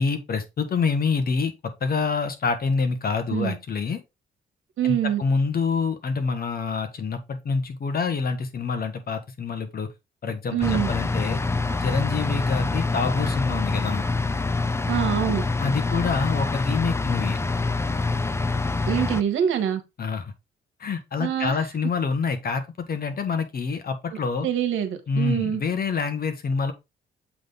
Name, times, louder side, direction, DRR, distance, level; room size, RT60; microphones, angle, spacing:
voice 1, 0.0-1.5 1.8-4.0 4.8-9.9 10.2-11.4 11.8-14.1 15.6-17.4 20.0-20.3 20.8-22.6 22.9-24.5 25.1-26.7, left 4 dB, 50° left, 1.3 m, -26 dB
voice 2, 4.8-5.2 10.5-10.9 14.9-15.4 18.9-19.8 21.2-21.6 24.4-25.6, right 9 dB, 80° right, 1.5 m, -24 dB
sound 1, 10.6-19.2, left 3 dB, 15° left, 0.5 m, -25 dB
7.7 x 3.5 x 4.0 m
cardioid pair, 90°, 20 cm